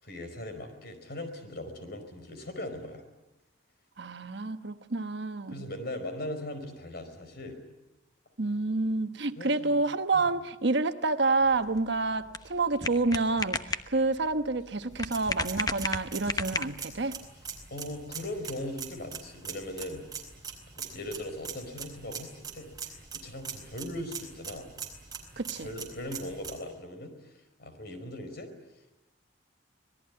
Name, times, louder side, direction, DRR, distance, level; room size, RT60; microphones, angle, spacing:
voice 1, 0.0-3.0 5.5-7.6 9.4-9.8 10.1-10.3 17.7-20.0 20.8-24.7 25.6-27.3 27.6-28.5, left 1 dB, 55° left, 7 dB, 4.9 m, -39 dB
voice 2, 4.0-5.6 8.4-17.2 25.4-25.7, right 3 dB, 60° right, 9 dB, 1.1 m, -28 dB
sound 1, 11.4-17.0, left 3 dB, 20° left, 1.0 m, -35 dB
sound 2, 14.9-26.5, right 6 dB, 20° right, 4.4 m, -43 dB
26.0 x 19.5 x 9.6 m, 0.97 s
head